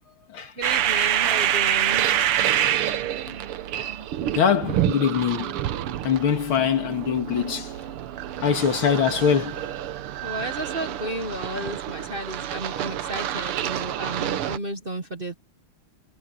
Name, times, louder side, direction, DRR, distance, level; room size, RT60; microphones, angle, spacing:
voice 1, 0.6-2.1 8.9-9.1 10.1-15.3, right 1 dB, 30° right, 1.2 m, -33 dB
sound 1, 0.6-14.6, right 11 dB, 90° right, 1.9 m, -27 dB
voice 2, 4.3-5.6 6.0-7.7 8.4-9.7, left 7 dB, 75° left, 2.7 m, -23 dB
omnidirectional pair, 2.4 m